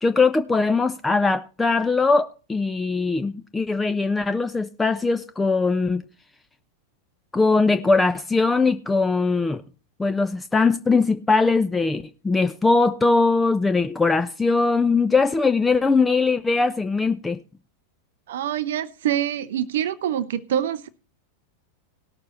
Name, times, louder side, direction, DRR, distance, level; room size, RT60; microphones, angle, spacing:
voice 1, 0.0-6.0 7.3-9.6 10.0-17.4, left 3 dB, 10° left, 0.5 m, -21 dB
voice 2, 18.3-20.9, right 10 dB, 60° right, 0.6 m, -25 dB
18.0 x 6.7 x 4.1 m
figure-of-eight pair, 90°, 0 cm